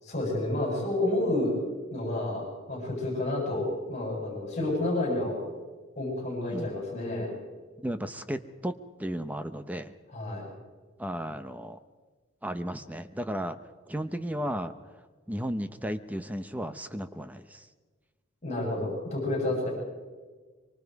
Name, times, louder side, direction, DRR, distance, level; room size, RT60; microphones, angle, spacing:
voice 1, 0.0-1.5 1.9-5.3 6.0-7.3 10.1-10.5 18.4-19.7, left 1 dB, 35° left, -2 dB, 7.8 m, -30 dB
voice 2, 7.8-9.9 11.0-11.8 12.4-13.6 13.9-14.7 15.3-17.7, equal, 10° right, 10 dB, 0.8 m, -34 dB
24.5 x 24.0 x 4.8 m, 1.4 s
head